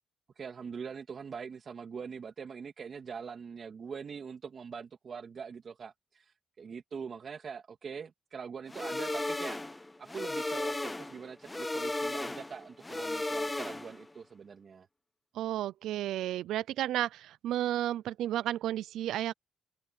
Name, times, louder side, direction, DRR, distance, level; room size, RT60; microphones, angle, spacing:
voice 1, 0.4-9.6 10.0-14.9, right 6 dB, 45° right, 2.8 m, -43 dB
sound 1, 8.7-14.1, left 2 dB, 15° left, 0.5 m, -35 dB
voice 2, 15.3-19.3, right 12 dB, 85° right, 0.6 m, -32 dB
open air
cardioid pair, 90°, 0 cm